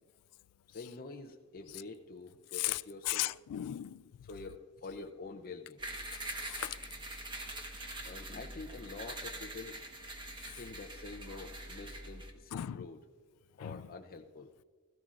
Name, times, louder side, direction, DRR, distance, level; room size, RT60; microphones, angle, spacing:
voice 1, 0.7-3.3 4.2-5.8 8.0-9.8 10.5-13.0 13.6-14.5, left 3 dB, 40° left, 0.6 m, -47 dB
voice 2, 3.1-4.0 6.4-6.8 12.5-12.9 13.6-13.8, left 14 dB, 90° left, 0.3 m, -36 dB
sound 1, 5.8-12.3, right 1 dB, 20° right, 1.2 m, -44 dB
17.0 x 14.5 x 2.5 m
head